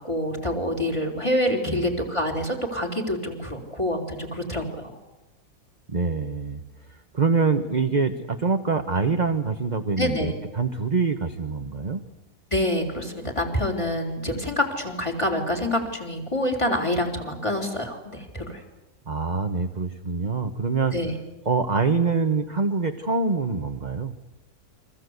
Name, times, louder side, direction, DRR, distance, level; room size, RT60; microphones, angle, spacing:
voice 1, 0.0-4.7 10.0-10.4 12.5-18.6 20.9-21.1, left 1 dB, 15° left, 3 dB, 4.1 m, -26 dB
voice 2, 5.9-6.6 7.1-12.0 19.1-20.9 21.4-24.1, right 4 dB, 25° right, 6 dB, 1.1 m, -25 dB
29.5 x 24.0 x 8.2 m, 1.0 s
omnidirectional pair, 2.0 m